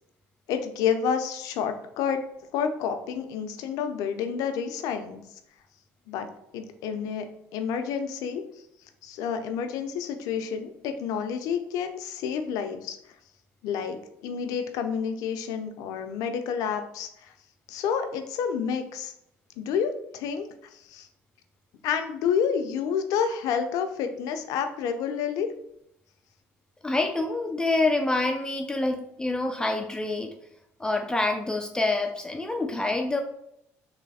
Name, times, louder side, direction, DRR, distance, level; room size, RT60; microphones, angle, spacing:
voice 1, 0.5-2.2 2.5-5.2 6.1-6.3 6.5-7.3 7.5-8.4 9.0-13.0 13.6-14.0 14.2-17.3 17.7-19.1 19.6-21.1 21.8-25.5, left 7 dB, 75° left, 7 dB, 0.6 m, -29 dB
voice 2, 26.8-30.3 30.8-33.2, left 2 dB, 15° left, 4 dB, 0.5 m, -26 dB
3.2 x 3.1 x 4.1 m, 0.79 s
supercardioid pair, 85°, 6 cm